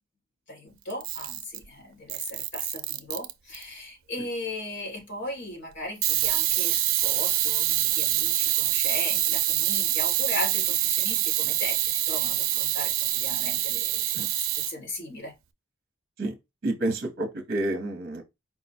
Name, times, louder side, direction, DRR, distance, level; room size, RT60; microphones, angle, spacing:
voice 1, 0.5-15.3, left 1 dB, 60° left, 2.8 m, -37 dB
Camera, 0.9-1.7 2.1-3.6 6.0-14.7, right 14 dB, 90° right, 0.5 m, -26 dB
voice 2, 16.6-18.2, right 1 dB, 50° right, 0.9 m, -29 dB
4.8 x 2.2 x 4.2 m
head